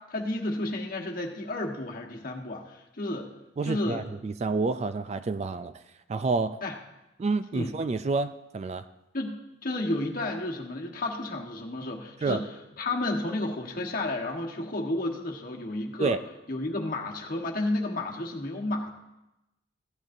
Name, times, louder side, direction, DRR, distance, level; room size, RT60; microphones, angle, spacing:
voice 1, 0.0-3.3 3.6-4.0 6.6-6.8 7.5-7.7 9.1-9.4 9.6-16.2 16.5-18.9, left 2 dB, 45° left, 0 dB, 1.3 m, -32 dB
voice 2, 3.6-5.7 6.1-6.6 7.2-8.8 12.2-12.4 16.0-16.2, right 3 dB, 35° right, 11 dB, 0.3 m, -28 dB
16.0 x 11.5 x 2.6 m, 0.94 s
head